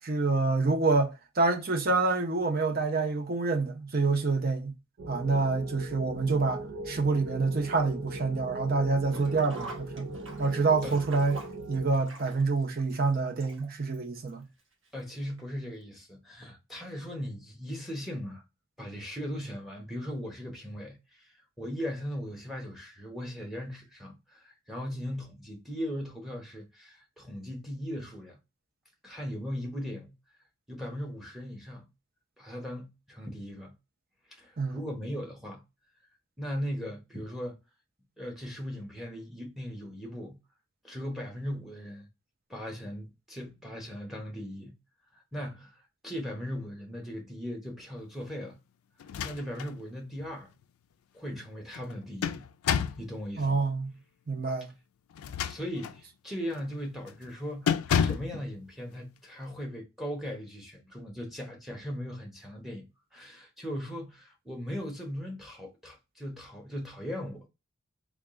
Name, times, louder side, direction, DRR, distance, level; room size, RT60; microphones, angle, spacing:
voice 1, 0.0-4.7 5.1-10.1 10.4-11.4 11.7-14.5 34.6-34.8 53.4-54.0 54.3-54.7, right 3 dB, 45° right, 0.7 m, -27 dB
sound 1, 5.0-11.9, right 2 dB, 90° right, 0.7 m, -40 dB
Sink (filling or washing), 9.0-14.0 14.3-14.4 15.4-15.5 15.8-15.9, right 2 dB, 60° right, 1.1 m, -45 dB
voice 2, 14.9-18.4 18.8-28.4 29.0-30.1 30.7-31.9 32.4-33.7 34.3-35.6 36.4-37.6 38.2-40.4 40.8-42.1 42.5-44.8 45.1-45.8 46.0-48.6 49.2-50.5 51.1-52.5 53.0-53.6 55.5-62.9 63.1-67.5, equal, ahead, 0.9 m, -38 dB
sound 2, 49.0-49.8 50.2-50.3 51.7-53.1 55.1-56.0 56.5-56.8 57.1-57.3 57.7-58.4, left 7 dB, 85° left, 0.3 m, -30 dB
3.5 x 2.4 x 3.6 m
head